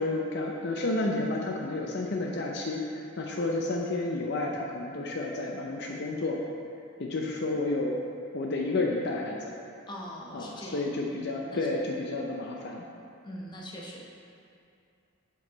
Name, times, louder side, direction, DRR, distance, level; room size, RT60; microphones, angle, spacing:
voice 1, 0.0-6.4 7.0-8.0 8.3-9.5 10.3-12.9, left 2 dB, 55° left, 0 dB, 0.6 m, -31 dB
voice 2, 9.9-10.8 11.5-11.6 13.2-14.1, equal, 20° left, -3 dB, 0.8 m, -41 dB
8.4 x 5.3 x 3.9 m, 2.5 s
head